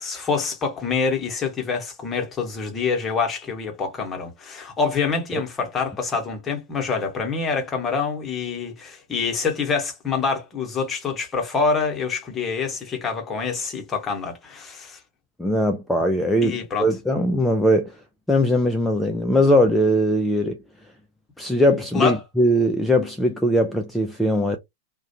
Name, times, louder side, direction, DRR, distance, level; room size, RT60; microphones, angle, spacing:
voice 1, 0.0-15.0 16.4-16.9 21.9-22.2, left 5 dB, 20° left, 0.9 m, -26 dB
voice 2, 15.4-18.0 18.3-20.6 21.4-24.6, equal, 5° left, 0.4 m, -20 dB
2.3 x 2.2 x 2.8 m
figure-of-eight pair, 90°, 0 cm